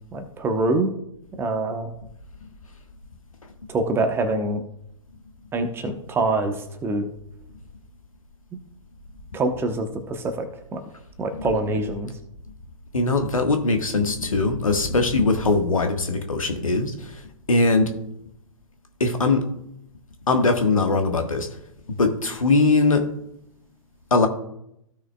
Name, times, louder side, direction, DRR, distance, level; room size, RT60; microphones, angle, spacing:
voice 1, 0.1-0.9 1.4-1.9 3.7-4.6 5.5-7.1 9.3-10.8 11.2-12.1, right 2 dB, 15° right, 0.9 m, -25 dB
voice 2, 12.9-17.2 17.5-17.9 19.0-19.5 20.3-21.6 22.0-23.1 24.1-24.3, left 3 dB, 75° left, 1.4 m, -21 dB
15.5 x 6.2 x 2.3 m
figure-of-eight pair, 120°, 18 cm